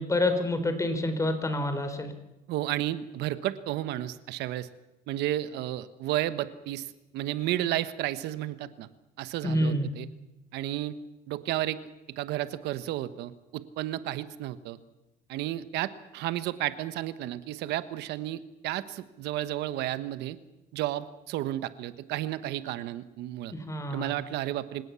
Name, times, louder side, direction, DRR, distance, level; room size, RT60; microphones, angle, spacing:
voice 1, 0.0-2.1 9.4-9.9 23.5-24.1, left 1 dB, 20° left, 8 dB, 4.0 m, -28 dB
voice 2, 2.5-4.7 5.1-8.9 9.2-10.1 10.5-10.9 11.3-11.8 12.2-14.8 15.3-20.4 20.7-23.5 23.9-24.8, right 14 dB, 85° right, 13 dB, 1.2 m, -32 dB
28.0 x 17.0 x 7.0 m, 0.98 s
cardioid pair, 110°, 17 cm